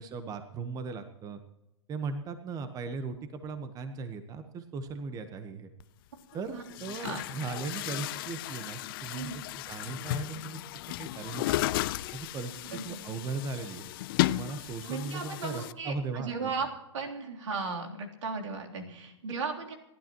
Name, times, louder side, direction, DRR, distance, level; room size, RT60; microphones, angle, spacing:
voice 1, 0.0-1.4 1.9-5.7 6.3-10.6 11.0-11.5 12.1-13.9 14.3-16.5, right 4 dB, 25° right, 9 dB, 1.3 m, -38 dB
Chatter / Gurgling / Tap, 5.8-5.9 6.6-15.7, left 17 dB, 50° left, 0.6 m, -34 dB
voice 2, 14.9-16.7 16.9-19.8, right 4 dB, 80° right, 1 dB, 3.4 m, -36 dB
29.0 x 12.5 x 3.1 m, 0.89 s
hypercardioid pair, 125°, 15 cm